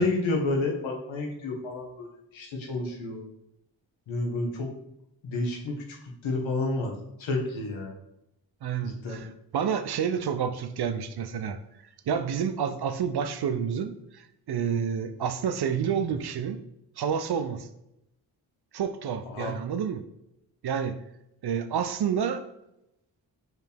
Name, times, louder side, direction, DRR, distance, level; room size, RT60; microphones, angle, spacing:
voice 1, 0.0-2.1 2.3-3.2 4.1-4.7 5.2-5.8 6.2-6.9 7.2-7.9 8.8-9.2 19.3-19.5, left 2 dB, 80° left, 1 dB, 1.1 m, -29 dB
voice 2, 8.6-11.6 12.1-14.2 14.5-16.6 17.0-17.7 18.7-20.0 20.6-21.0 21.4-22.4, right 7 dB, 55° right, 11 dB, 0.6 m, -29 dB
4.7 x 3.3 x 3.4 m, 0.82 s
cardioid pair, 45°, 46 cm